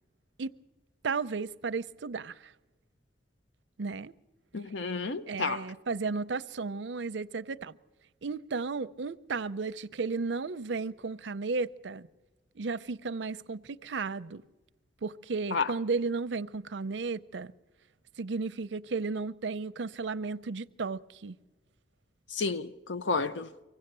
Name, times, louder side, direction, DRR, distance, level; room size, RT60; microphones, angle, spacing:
voice 1, 1.0-2.5 3.8-4.1 5.3-7.8 8.2-12.1 12.6-14.4 15.0-17.5 18.2-21.4, right 4 dB, 80° right, 0.6 m, -34 dB
voice 2, 4.5-5.7 15.5-15.7 22.3-23.5, left 4 dB, 90° left, 0.7 m, -31 dB
25.0 x 16.5 x 6.8 m
head